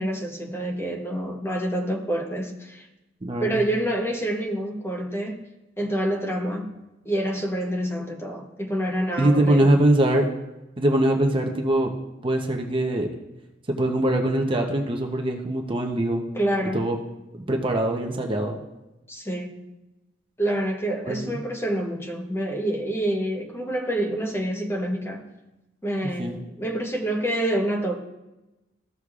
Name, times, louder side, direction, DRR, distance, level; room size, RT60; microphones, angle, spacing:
voice 1, 0.0-2.9 3.4-5.4 5.8-6.7 7.0-9.7 16.3-16.9 19.1-19.6 20.4-25.2 25.8-28.0, right 1 dB, 15° left, 1 dB, 0.9 m, -27 dB
voice 2, 3.2-3.6 9.2-10.3 10.8-11.9 12.2-13.1 13.7-16.2 16.7-17.0 17.3-18.6 21.0-21.4 26.0-26.4, right 1 dB, 25° right, 2 dB, 0.7 m, -22 dB
15.0 x 6.4 x 2.4 m, 1.0 s
head